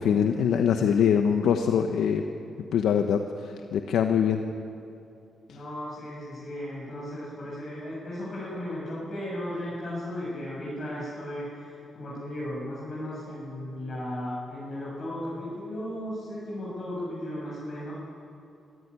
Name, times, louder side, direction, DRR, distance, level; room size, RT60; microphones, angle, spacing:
voice 1, 0.0-2.2 2.7-4.4, left 8 dB, 85° left, 5 dB, 1.1 m, -23 dB
voice 2, 5.5-17.9, left 1 dB, 45° left, -7 dB, 7.5 m, -35 dB
25.0 x 14.5 x 10.0 m, 2.6 s
cardioid pair, 95°, 0 cm